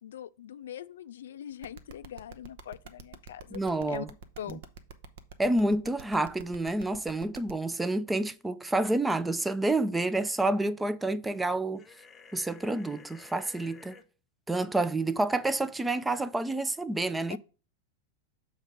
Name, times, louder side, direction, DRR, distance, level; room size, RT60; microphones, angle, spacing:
voice 1, 0.0-3.6 3.9-4.1 4.4-4.6 17.3-17.4, left 10 dB, 60° left, 0.3 m, -42 dB
sound 1, 1.6-7.5, right 5 dB, 55° right, 0.7 m, -46 dB
voice 2, 3.5-4.1 4.5-4.6 5.4-11.8 12.3-14.0 14.5-17.4, right 2 dB, 10° right, 0.4 m, -29 dB
sound 2, 11.8-14.0, left 5 dB, 15° left, 0.8 m, -53 dB
6.4 x 3.6 x 6.1 m
figure-of-eight pair, 90°, 0 cm